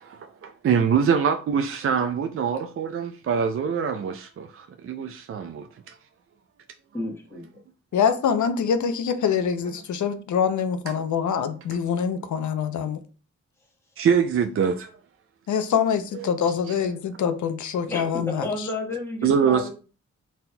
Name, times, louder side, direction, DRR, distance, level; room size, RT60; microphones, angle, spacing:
voice 1, 0.2-5.9 14.0-14.9 19.2-19.7, right 7 dB, 45° right, 0.4 m, -24 dB
voice 2, 6.9-7.6 17.9-19.7, left 2 dB, 10° left, 1.2 m, -32 dB
voice 3, 7.9-13.0 15.5-18.7, left 7 dB, 70° left, 0.6 m, -25 dB
4.1 x 4.0 x 2.2 m
cardioid pair, 75°, 31 cm